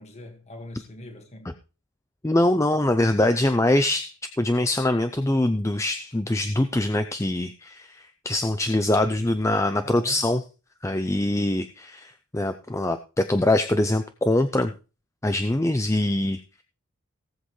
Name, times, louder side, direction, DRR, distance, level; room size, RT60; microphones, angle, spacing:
voice 1, 0.0-1.5 9.8-10.3, left 1 dB, 30° left, 1.7 m, -42 dB
voice 2, 2.2-10.4 10.8-14.7 15.2-16.6, left 1 dB, 15° left, 0.5 m, -23 dB
18.0 x 7.7 x 3.2 m
head